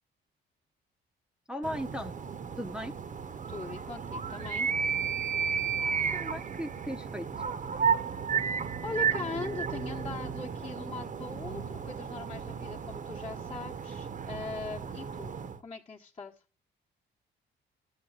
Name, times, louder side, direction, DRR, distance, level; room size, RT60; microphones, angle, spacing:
voice 1, 1.5-2.1 2.6-3.0 5.8-7.3, equal, 5° right, 0.7 m, -37 dB
sound 1, 1.6-15.6, right 6 dB, 40° right, 0.8 m, -33 dB
voice 2, 3.5-4.7 8.0-8.4 8.8-15.3 15.6-16.3, left 4 dB, 30° left, 1.1 m, -40 dB
12.0 x 7.1 x 2.3 m
cardioid pair, 90°, 20 cm